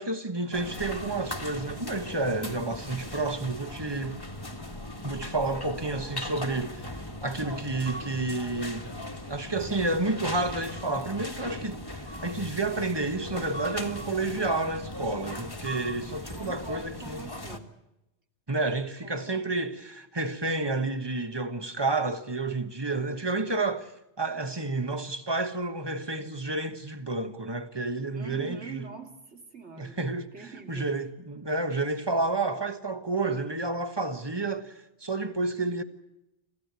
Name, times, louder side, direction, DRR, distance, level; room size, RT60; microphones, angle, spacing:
voice 1, 0.0-4.2 5.0-6.9 7.2-8.9 9.3-17.2 18.5-23.9 24.2-28.9 29.8-30.3 30.7-35.8, right 2 dB, 25° right, 1.3 m, -30 dB
sound 1, 0.5-17.6, left 1 dB, 20° left, 1.7 m, -39 dB
voice 2, 4.8-5.2 16.3-17.7 19.0-19.6 28.1-30.0 30.3-30.9, right 5 dB, 90° right, 3.1 m, -44 dB
26.5 x 15.5 x 8.2 m
omnidirectional pair, 1.1 m